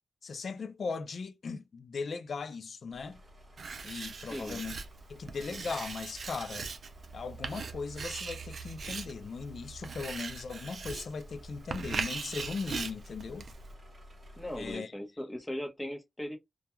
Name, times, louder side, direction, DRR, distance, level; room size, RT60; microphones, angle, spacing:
voice 1, 0.2-3.2 3.8-4.8 5.1-6.7 7.1-13.5 14.6-14.9, left 5 dB, 65° left, 0.4 m, -38 dB
sound 1, 2.9-14.7, equal, 45° right, 1.0 m, -54 dB
Writing, 3.6-13.7, right 5 dB, 65° right, 0.4 m, -40 dB
voice 2, 4.2-4.6 14.4-16.4, left 1 dB, 10° left, 0.8 m, -39 dB
2.3 x 2.2 x 2.9 m
wide cardioid pair, 120°, 0 cm